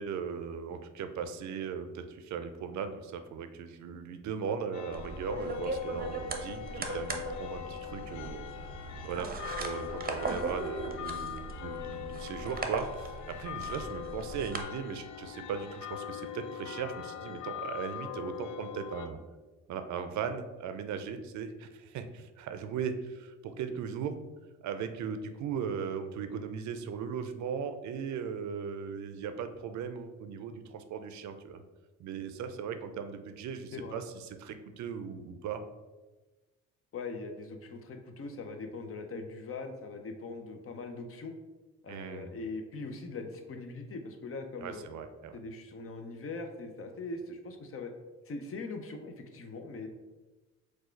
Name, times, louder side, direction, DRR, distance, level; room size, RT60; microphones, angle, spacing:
voice 1, 0.0-19.2 19.7-24.2 24.6-31.6 32.0-35.6 41.9-42.3 44.6-45.4, right 6 dB, 70° right, 8 dB, 0.5 m, -38 dB
sound 1, 4.7-19.1, left 11 dB, 85° left, 0.5 m, -42 dB
sound 2, 4.9-14.6, right 3 dB, 30° right, 0.6 m, -39 dB
voice 2, 36.9-41.3 41.8-44.9 45.3-47.9 48.3-49.9, left 3 dB, 45° left, 5 dB, 0.7 m, -41 dB
4.6 x 2.3 x 4.4 m, 1.2 s
cardioid pair, 90°, 30 cm